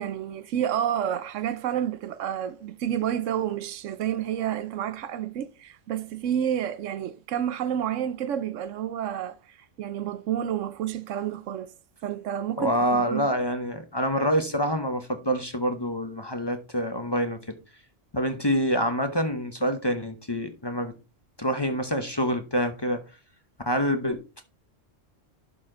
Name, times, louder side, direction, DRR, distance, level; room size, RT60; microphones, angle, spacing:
voice 1, 0.0-11.7 12.0-13.3, right 10 dB, 80° right, 1.0 m, -30 dB
voice 2, 12.6-17.6 18.1-20.9 21.4-23.0 23.7-24.4, equal, 25° left, 0.8 m, -26 dB
11.5 x 4.3 x 3.8 m
omnidirectional pair, 1.3 m